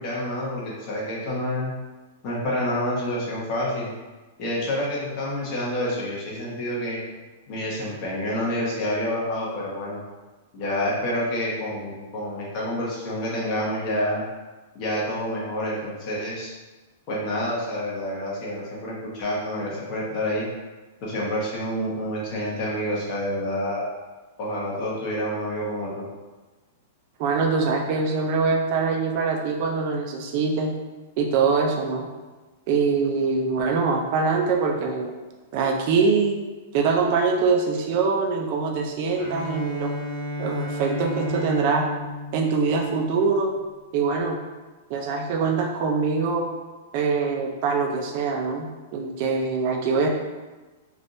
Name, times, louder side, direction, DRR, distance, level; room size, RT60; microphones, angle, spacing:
voice 1, 0.0-1.7 2.2-3.9 4.4-7.0 7.5-10.0 10.5-14.2 14.7-16.5 17.1-20.5 21.0-23.9 24.4-26.0, left 1 dB, 40° left, -5 dB, 1.0 m, -28 dB
voice 2, 27.2-30.7 31.2-32.1 32.7-35.1 35.5-36.3 36.7-39.9 40.4-41.9 42.3-43.5 43.9-44.4 44.9-46.5 46.9-50.1, right 4 dB, 45° right, 2 dB, 0.5 m, -23 dB
Bowed string instrument, 39.1-43.2, left 1 dB, 15° left, 1.1 m, -32 dB
3.4 x 2.4 x 2.6 m, 1.2 s
supercardioid pair, 155°, 0 cm